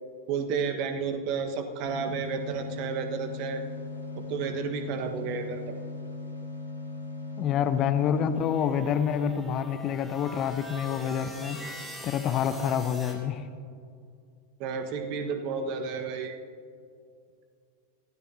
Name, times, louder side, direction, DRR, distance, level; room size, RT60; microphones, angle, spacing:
voice 1, 0.3-3.6 4.1-5.8 12.2-12.8 14.6-16.4, right 5 dB, 45° right, 7 dB, 1.5 m, -32 dB
sound 1, 1.8-8.4, left 3 dB, 80° right, 2.4 m, -38 dB
voice 2, 7.4-11.6 12.0-13.5, left 8 dB, 35° left, 10 dB, 0.9 m, -27 dB
sound 2, 8.4-13.2, equal, 5° right, 3.4 m, -43 dB
26.5 x 16.0 x 2.8 m, 2.3 s
figure-of-eight pair, 90°, 0 cm